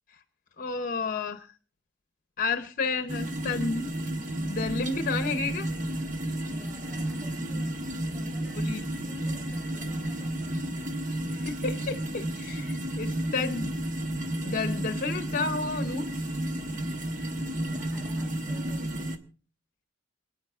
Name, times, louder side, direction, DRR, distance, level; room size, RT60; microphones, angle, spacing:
voice 1, 0.6-1.5 2.4-3.9 4.4-5.7 8.6-8.8 11.4-13.7 14.4-16.3, left 4 dB, 45° left, 8 dB, 0.7 m, -31 dB
sound 1, 3.1-19.2, right 1 dB, 45° right, 1.2 m, -32 dB
voice 2, 6.5-10.8 13.2-13.6 17.6-19.2, left 1 dB, 5° right, 2 dB, 6.9 m, -49 dB
28.0 x 9.4 x 2.4 m, 0.37 s
head